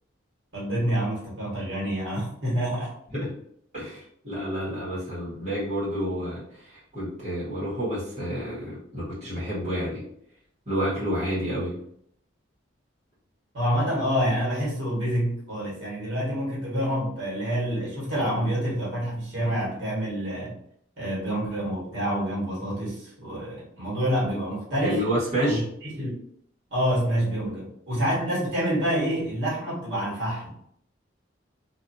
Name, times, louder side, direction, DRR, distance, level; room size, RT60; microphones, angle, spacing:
voice 1, 0.5-2.9 13.5-20.6 21.0-25.1 25.5-25.6 25.9-26.1 26.7-30.5, equal, 70° right, -6 dB, 1.4 m, -27 dB
voice 2, 3.7-10.0 10.7-11.8 24.8-25.6, equal, 35° right, -9 dB, 1.3 m, -29 dB
2.6 x 2.5 x 2.6 m, 0.67 s
head